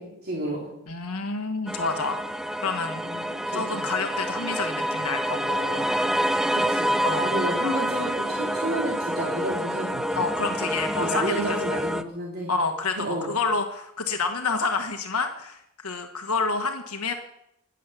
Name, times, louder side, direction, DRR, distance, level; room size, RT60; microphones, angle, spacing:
voice 1, 0.0-0.7 3.0-3.8 6.5-6.9 7.2-10.2 11.0-12.5 12.9-13.3, right 1 dB, 45° right, -3 dB, 3.0 m, -31 dB
voice 2, 0.9-2.2 2.6-3.0 3.5-5.9 7.0-7.3 7.6-7.8 10.2-11.6 12.5-17.1, left 4 dB, 75° left, 4 dB, 1.4 m, -28 dB
sound 1, 1.7-12.0, equal, ahead, 0.5 m, -27 dB
21.0 x 7.5 x 7.1 m, 0.82 s
head